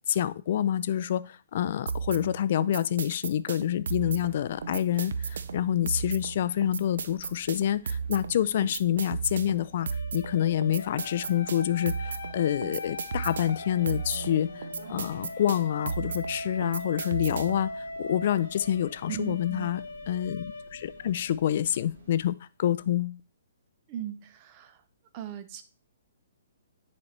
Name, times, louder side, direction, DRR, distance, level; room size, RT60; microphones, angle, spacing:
voice 1, 0.1-19.8 20.1-23.2, left 11 dB, 50° left, 15 dB, 0.4 m, -27 dB
sound 1, 1.9-17.7, right 5 dB, 75° right, 0.5 m, -35 dB
sound 2, 4.0-22.2, right 3 dB, 60° right, 1.5 m, -52 dB
sound 3, 9.8-21.6, left 2 dB, 75° left, 1.1 m, -41 dB
voice 2, 19.1-19.7 23.9-24.8 25.1-25.6, right 11 dB, 30° right, 10 dB, 0.7 m, -38 dB
9.8 x 4.2 x 3.2 m, 0.34 s
hypercardioid pair, 155°, 0 cm